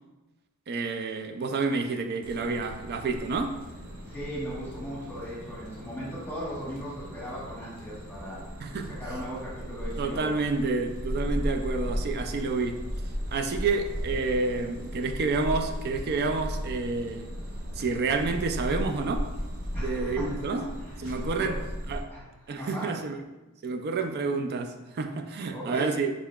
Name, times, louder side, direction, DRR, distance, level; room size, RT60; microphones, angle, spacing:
voice 1, 0.7-3.6 8.6-9.0 10.0-12.8 13.3-17.3 17.8-19.3 19.8-20.7 21.0-21.6 21.9-22.1 22.5-23.2 23.6-26.1, right 3 dB, 50° right, 0.4 m, -29 dB
sound 1, 2.2-22.0, equal, 75° right, 1.1 m, -36 dB
voice 2, 4.0-8.4 8.9-10.4 19.7-21.5 22.1-22.9 25.5-25.9, equal, 10° left, 1.3 m, -38 dB
5.6 x 3.6 x 2.3 m
head